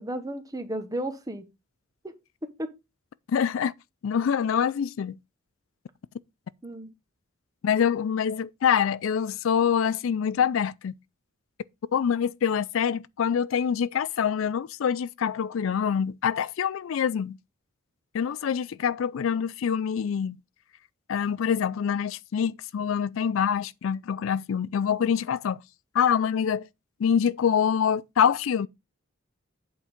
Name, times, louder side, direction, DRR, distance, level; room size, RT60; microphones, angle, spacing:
voice 1, 0.0-1.4 2.4-2.7 6.6-6.9, right 1 dB, 20° right, 1.1 m, -33 dB
voice 2, 3.3-3.7 4.0-5.2 7.6-10.9 11.9-17.4 18.1-20.4 21.1-25.6 25.9-26.7 27.0-28.7, left 7 dB, 75° left, 0.4 m, -25 dB
8.3 x 4.4 x 5.1 m
head